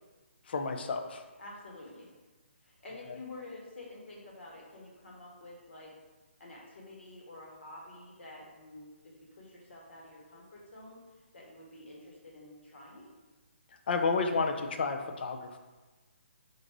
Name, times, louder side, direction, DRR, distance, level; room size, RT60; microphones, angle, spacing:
voice 1, 0.5-1.2 13.9-15.6, left 4 dB, 50° left, 5 dB, 0.5 m, -31 dB
voice 2, 1.4-2.1 2.6-5.9 6.4-11.0 11.3-13.1, left 2 dB, 70° left, -3 dB, 1.5 m, -49 dB
4.0 x 2.6 x 4.6 m, 1.2 s
hypercardioid pair, 155°, 7 cm